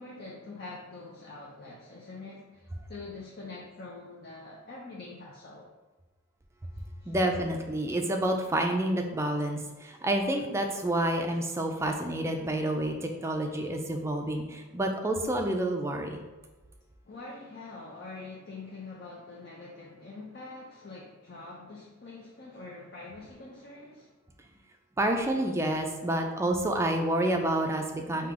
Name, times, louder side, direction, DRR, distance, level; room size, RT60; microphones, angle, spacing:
voice 1, 0.0-5.7 6.7-7.1 17.0-24.1, left 3 dB, 50° left, -4 dB, 0.6 m, -45 dB
voice 2, 7.1-16.2 25.0-28.3, right 1 dB, 15° right, 3 dB, 0.4 m, -29 dB
3.8 x 2.8 x 4.8 m, 1.2 s
head